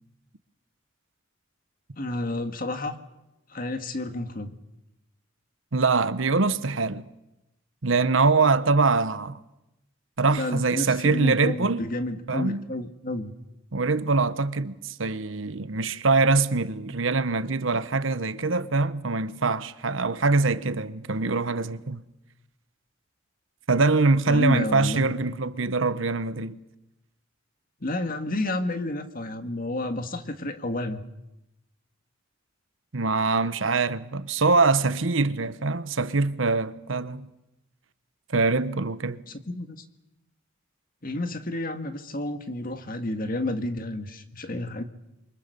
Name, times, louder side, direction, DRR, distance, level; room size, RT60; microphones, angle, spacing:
voice 1, 2.0-3.0 3.5-4.5 10.4-13.3 24.3-25.1 27.8-31.0 39.3-39.8 41.0-44.8, left 1 dB, 45° left, 1.8 m, -30 dB
voice 2, 5.7-7.1 7.8-9.4 10.2-11.8 12.3-12.6 13.7-22.0 23.7-26.6 32.9-37.3 38.3-39.2, right 3 dB, 75° right, 1.1 m, -23 dB
27.0 x 24.5 x 6.8 m
head